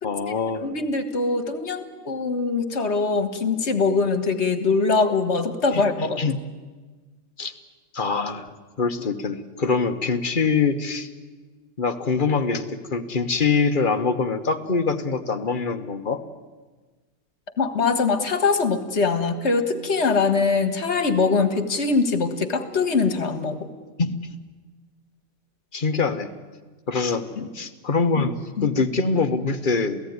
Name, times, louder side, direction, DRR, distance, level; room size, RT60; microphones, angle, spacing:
voice 1, 0.0-0.7 5.7-6.4 7.4-7.5 7.9-8.5 8.8-11.1 11.8-16.2 24.0-24.2 25.7-26.3 26.9-27.3 27.5-30.0, left 4 dB, 40° left, 8 dB, 1.3 m, -24 dB
voice 2, 0.6-6.2 17.6-23.6 27.4-27.5 28.6-28.7, left 4 dB, 55° left, 9 dB, 1.9 m, -22 dB
28.0 x 16.5 x 9.6 m, 1.3 s
omnidirectional pair, 1.4 m